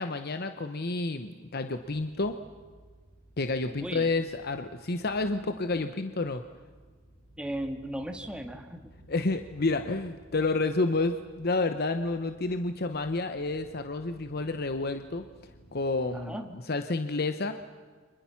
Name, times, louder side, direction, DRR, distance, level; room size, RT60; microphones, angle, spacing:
voice 1, 0.0-2.4 3.4-6.4 9.1-15.2 15.7-17.6, left 3 dB, 50° left, 8 dB, 1.0 m, -30 dB
sound 1, 1.7-16.0, equal, 20° left, 6.8 m, -56 dB
voice 2, 7.4-8.9 16.1-16.5, right 1 dB, 5° right, 4 dB, 1.9 m, -36 dB
30.0 x 25.5 x 5.9 m, 1.5 s
head